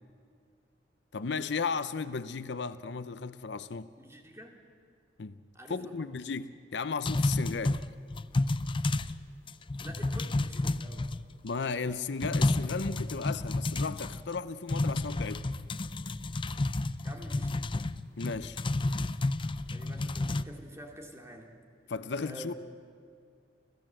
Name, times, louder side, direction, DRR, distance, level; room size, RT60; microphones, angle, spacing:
voice 1, 1.1-3.9 5.2-5.4 5.7-7.8 11.4-15.5 18.2-18.6 21.9-22.5, left 5 dB, 70° left, 0.6 m, -35 dB
voice 2, 4.0-4.6 5.5-6.1 9.8-11.0 17.0-17.7 19.7-21.5 22.2-22.5, right 1 dB, 15° right, 2.8 m, -48 dB
sound 1, 7.0-9.2 9.5-11.5 11.9-12.0 12.2-14.4 14.7-20.4, left 2 dB, 30° left, 0.5 m, -31 dB
29.0 x 16.0 x 7.7 m
head